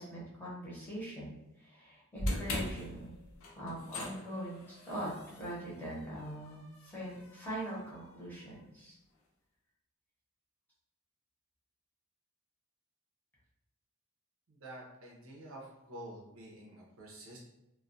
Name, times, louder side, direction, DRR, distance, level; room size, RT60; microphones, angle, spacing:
voice 1, 0.0-3.1 3.5-5.1 5.4-8.9, right 1 dB, 10° left, -8 dB, 0.8 m, -42 dB
sound 1, 2.2-8.4, left 1 dB, 70° left, 0.5 m, -42 dB
voice 2, 14.5-17.4, right 1 dB, 70° right, -3 dB, 0.6 m, -49 dB
2.2 x 2.2 x 2.5 m, 0.91 s
head